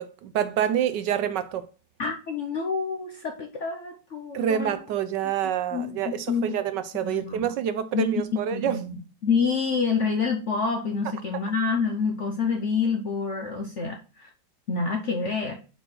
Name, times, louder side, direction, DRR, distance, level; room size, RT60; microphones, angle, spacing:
voice 1, 0.0-1.7 4.3-8.8, right 9 dB, 75° right, 1.1 m, -27 dB
voice 2, 2.0-4.8 5.7-6.6 7.0-7.4 7.9-8.1 8.5-14.3 14.7-15.6, left 5 dB, 60° left, 0.8 m, -27 dB
5.2 x 4.5 x 6.0 m
omnidirectional pair, 2.1 m